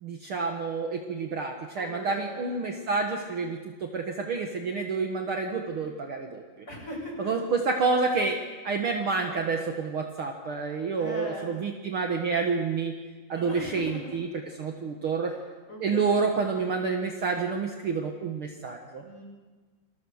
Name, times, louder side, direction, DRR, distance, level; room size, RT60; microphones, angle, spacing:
voice 1, 0.0-6.4 7.2-8.4 8.6-12.9 13.3-15.3 15.8-19.0, right 4 dB, 70° right, 2 dB, 1.2 m, -29 dB
voice 2, 1.7-2.5 6.7-7.3 11.0-11.5 13.3-14.1 15.7-16.3 19.0-19.2, equal, 20° left, 0 dB, 6.1 m, -39 dB
28.0 x 21.0 x 6.5 m, 1.3 s
omnidirectional pair, 4.8 m